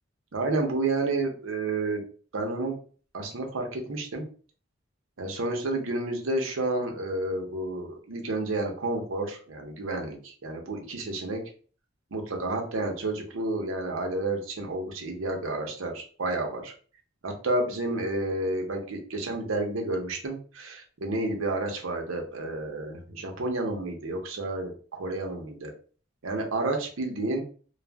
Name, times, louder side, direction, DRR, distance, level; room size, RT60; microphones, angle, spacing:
voice 1, 0.3-2.0 2.3-2.8 3.1-4.2 5.2-11.4 12.1-16.7 17.2-25.7 26.2-27.4, right 2 dB, 85° right, 2 dB, 0.7 m, -30 dB
2.4 x 2.0 x 3.4 m, 0.41 s
head